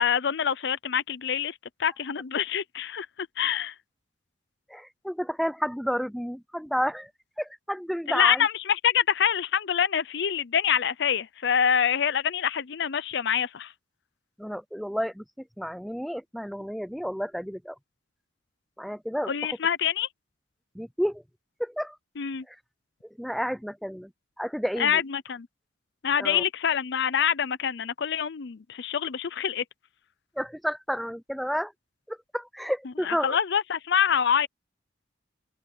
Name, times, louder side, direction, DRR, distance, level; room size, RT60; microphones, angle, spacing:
voice 1, 0.0-3.1 3.4-3.7 8.1-13.7 19.3-20.1 22.2-22.4 24.8-25.5 26.0-29.6 33.1-34.5, left 8 dB, 65° left, 0.6 m, -26 dB
voice 2, 4.7-7.1 7.4-8.5 14.4-15.2 15.6-17.8 18.8-19.3 20.7-21.2 21.6-22.0 22.5-22.6 23.2-24.1 24.4-25.0 26.2-26.4 30.4-31.7 32.1-33.4, equal, ahead, 0.5 m, -31 dB
open air
head